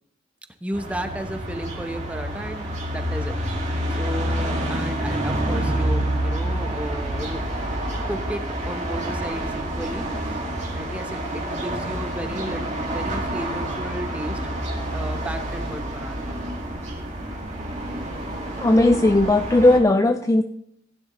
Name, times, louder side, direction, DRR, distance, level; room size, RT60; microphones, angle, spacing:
voice 1, 0.6-3.4 3.6-7.5 8.1-10.1 10.7-14.4 14.9-16.5, equal, 5° right, 6 dB, 0.8 m, -34 dB
sound 1, 0.7-19.8, right 1 dB, 35° right, 2.1 m, -28 dB
voice 2, 18.6-20.4, left 2 dB, 15° left, 7 dB, 0.3 m, -17 dB
16.0 x 9.6 x 3.1 m, 0.75 s
head